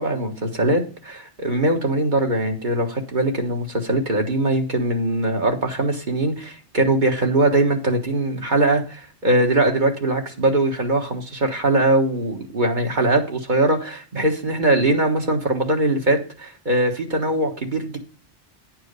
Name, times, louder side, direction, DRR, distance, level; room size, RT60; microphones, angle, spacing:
voice 1, 0.0-18.0, right 2 dB, 40° right, 3 dB, 1.7 m, -21 dB
10.5 x 4.6 x 6.6 m, 0.38 s
omnidirectional pair, 1.2 m